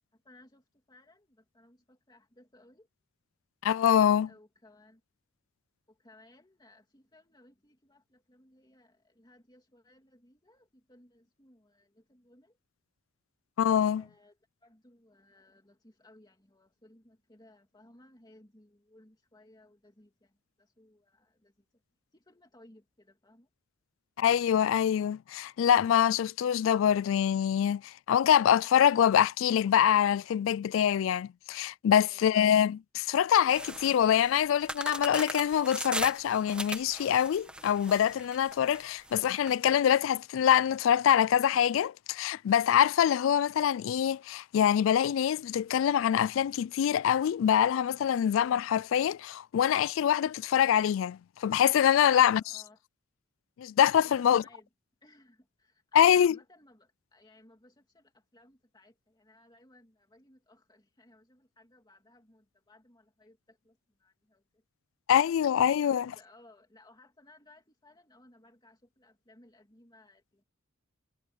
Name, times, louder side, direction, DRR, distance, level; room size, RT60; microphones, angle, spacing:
voice 1, 0.1-2.9 4.3-5.0 5.9-12.6 14.0-21.7 22.1-23.5 32.0-32.4 52.1-52.8 54.0-54.7 55.0-64.6 65.1-65.3 65.8-70.4, left 1 dB, 20° left, 2.8 m, -60 dB
voice 2, 3.6-4.3 13.6-14.0 24.2-52.4 53.6-54.4 55.9-56.4 65.1-66.1, left 9 dB, 70° left, 0.3 m, -25 dB
sound 1, 33.5-39.5, right 1 dB, 5° right, 1.1 m, -39 dB
head